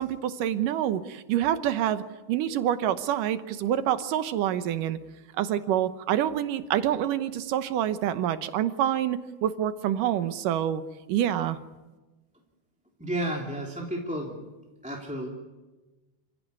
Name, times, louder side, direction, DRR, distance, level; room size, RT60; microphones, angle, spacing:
voice 1, 0.0-5.0 5.4-10.8 11.1-11.6, right 11 dB, 85° right, 11 dB, 2.7 m, -27 dB
voice 2, 13.0-14.5 14.8-15.3, right 1 dB, ahead, -1 dB, 2.5 m, -32 dB
28.5 x 16.5 x 9.7 m, 1.2 s
omnidirectional pair, 3.7 m